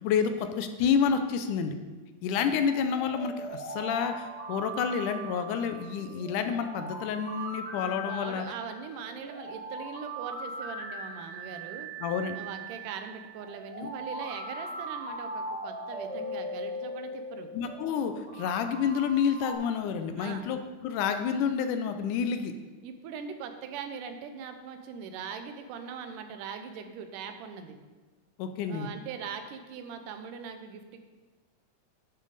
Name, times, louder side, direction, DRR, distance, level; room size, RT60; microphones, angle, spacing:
voice 1, 0.0-1.8 2.2-8.5 12.0-12.4 13.8-13.9 17.5-22.5 28.4-28.9, left 7 dB, 80° left, 8 dB, 2.0 m, -29 dB
sound 1, 2.4-19.5, right 1 dB, 40° right, 1.0 m, -40 dB
voice 2, 8.1-11.9 12.3-17.5 20.2-20.5 22.8-27.8 28.7-31.0, right 6 dB, 80° right, 7 dB, 2.3 m, -41 dB
10.5 x 6.5 x 4.0 m, 1.3 s
omnidirectional pair, 3.8 m